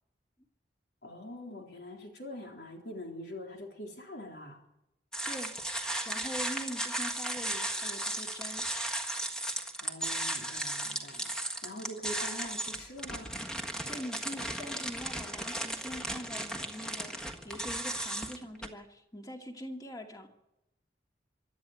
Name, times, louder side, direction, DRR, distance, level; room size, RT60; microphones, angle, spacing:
voice 1, 1.0-4.6 9.8-11.4 11.6-13.3, left 1 dB, 75° left, 1 dB, 3.9 m, -44 dB
sound 1, 5.1-18.7, right 1 dB, 5° left, 1.5 m, -36 dB
voice 2, 6.0-8.7 13.9-20.3, equal, 20° left, 2 dB, 2.3 m, -43 dB
25.5 x 12.0 x 9.4 m, 0.90 s
head